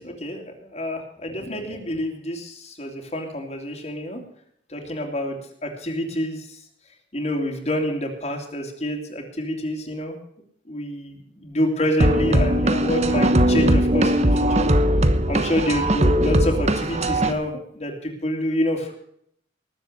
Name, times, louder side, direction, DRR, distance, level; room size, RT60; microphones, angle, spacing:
voice 1, 0.0-4.2 4.7-6.6 7.1-10.2 10.7-14.7 15.3-18.9, equal, 35° left, 2 dB, 2.7 m, -27 dB
sound 1, 12.0-17.3, right 1 dB, 35° right, 1.1 m, -19 dB
20.0 x 7.4 x 6.5 m, 0.66 s
head